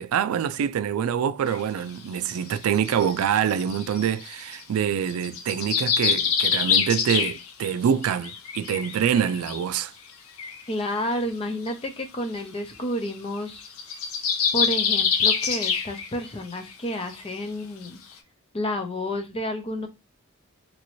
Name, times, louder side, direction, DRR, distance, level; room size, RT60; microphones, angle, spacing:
voice 1, 0.0-9.9, right 8 dB, 85° right, 0.3 m, -25 dB
sound 1, 1.5-1.6 2.3-4.6 5.1-7.7 8.0-9.6 10.1-10.2 10.4-10.6 11.7-11.8 12.0-12.1 12.4-12.6 13.0-13.1 13.4-16.3 16.6-16.7 17.1-17.2 17.8-17.9, left 7 dB, 75° left, 0.6 m, -26 dB
voice 2, 10.7-13.7 14.5-18.0 18.5-19.9, equal, 25° left, 0.6 m, -30 dB
3.0 x 2.6 x 3.0 m
head